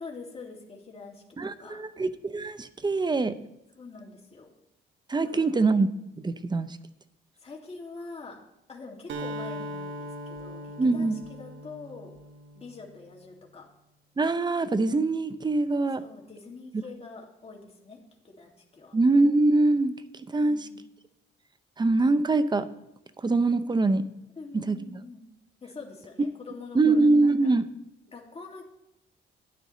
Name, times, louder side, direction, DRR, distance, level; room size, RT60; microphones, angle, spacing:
voice 1, 0.0-1.9 3.8-4.5 5.2-5.7 7.4-8.4 8.7-12.2 12.6-13.7 15.9-18.0 18.2-19.0 20.4-20.8 24.4-25.2 25.6-27.5 28.1-28.6, left 4 dB, 30° left, 0 dB, 2.2 m, -45 dB
voice 2, 1.4-3.4 5.1-5.9 6.2-6.8 10.8-11.2 14.2-16.1 18.9-19.9 20.3-20.7 21.8-22.7 23.2-24.1 24.5-25.0 26.7-27.7, right 3 dB, 20° right, 13 dB, 0.6 m, -23 dB
Acoustic guitar, 9.1-13.0, equal, 65° right, 1.3 m, -39 dB
12.5 x 9.7 x 3.1 m, 0.85 s
cardioid pair, 90°, 20 cm